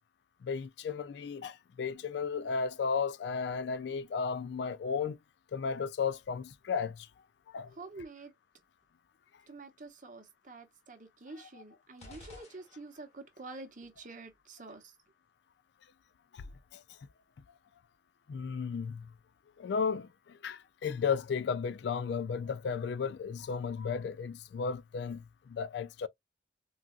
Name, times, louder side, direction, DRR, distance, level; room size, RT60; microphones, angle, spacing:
voice 1, 0.4-5.2 5.5-7.1 7.5-7.7 12.1-12.2 16.3-16.5 16.7-16.8 18.3-19.1 19.6-26.1, left 6 dB, 60° left, 0.3 m, -34 dB
voice 2, 7.7-8.3 9.5-15.0, right 3 dB, 45° right, 0.8 m, -48 dB
sound 1, 12.0-13.3, left 1 dB, 35° left, 1.3 m, -53 dB
3.9 x 2.3 x 2.3 m
head